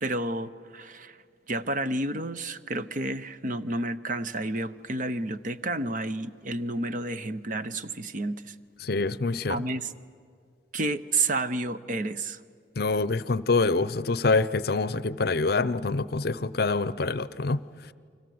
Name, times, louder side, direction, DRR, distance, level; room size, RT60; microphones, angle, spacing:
voice 1, 0.0-1.2 1.5-8.5 9.5-9.9 10.7-12.4, right 2 dB, 45° right, 12 dB, 0.8 m, -30 dB
voice 2, 8.8-9.6 12.8-17.6, left 3 dB, 55° left, 17 dB, 0.6 m, -26 dB
30.0 x 24.5 x 7.9 m, 2.1 s
head